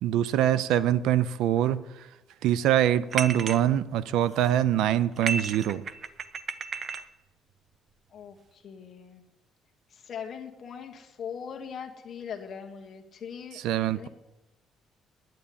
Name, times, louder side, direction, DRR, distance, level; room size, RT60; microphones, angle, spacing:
voice 1, 0.0-1.8 2.4-5.8 13.6-14.1, right 11 dB, 80° right, 0.5 m, -24 dB
sound 1, 3.1-3.6 4.2-4.6 5.1-7.1, right 5 dB, 35° right, 0.6 m, -33 dB
voice 2, 8.1-9.2 9.9-13.6 13.9-14.1, left 7 dB, 35° left, 1.5 m, -41 dB
9.7 x 9.3 x 8.7 m
cardioid pair, 175°, 0 cm